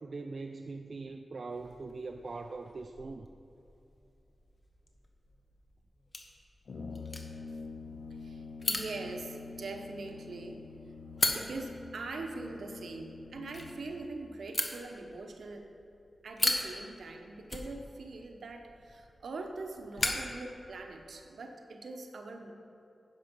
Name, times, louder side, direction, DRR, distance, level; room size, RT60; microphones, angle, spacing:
voice 1, 0.0-3.3, right 3 dB, 65° right, 5 dB, 0.4 m, -41 dB
sound 1, 1.5-21.1, left 2 dB, 45° left, 1.2 m, -40 dB
Brass instrument, 6.7-14.1, left 4 dB, 75° left, 0.5 m, -46 dB
voice 2, 8.1-15.7 16.2-22.5, right 3 dB, 85° right, 4 dB, 0.9 m, -43 dB
10.0 x 6.1 x 5.2 m, 2.8 s
cardioid pair, 45°, 0 cm